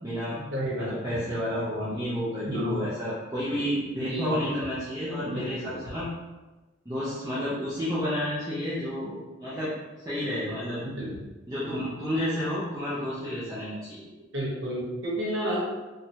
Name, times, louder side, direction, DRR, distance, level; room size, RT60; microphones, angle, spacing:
voice 1, 0.0-0.4 0.8-6.1 6.9-10.8 11.5-14.0, equal, 20° right, -10 dB, 0.5 m, -31 dB
voice 2, 0.5-0.9 2.4-2.8 3.6-3.7 4.0-4.3 5.2-5.8 10.8-11.2 14.3-15.6, equal, 80° right, -5 dB, 0.9 m, -31 dB
3.1 x 2.2 x 2.7 m, 1.2 s
head